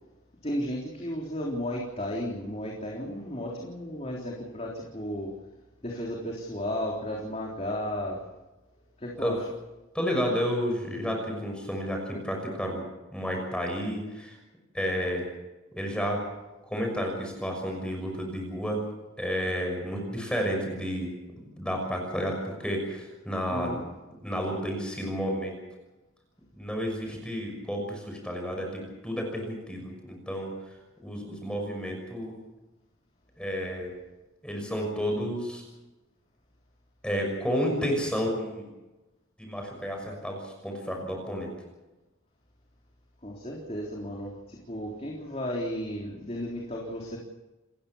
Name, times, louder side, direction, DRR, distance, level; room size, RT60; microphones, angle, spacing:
voice 1, 0.4-5.3 5.8-8.2 9.0-9.4 23.5-23.9 43.2-47.2, equal, 30° left, -2 dB, 3.7 m, -34 dB
voice 2, 9.9-12.8 13.1-14.4 14.7-15.3 15.7-16.2 16.6-18.8 19.2-23.8 24.2-25.5 26.5-30.5 31.0-32.3 33.4-33.9 34.4-35.6 37.0-38.7 39.4-41.5, equal, 5° left, 1 dB, 6.2 m, -31 dB
29.5 x 15.5 x 7.3 m, 1.1 s
head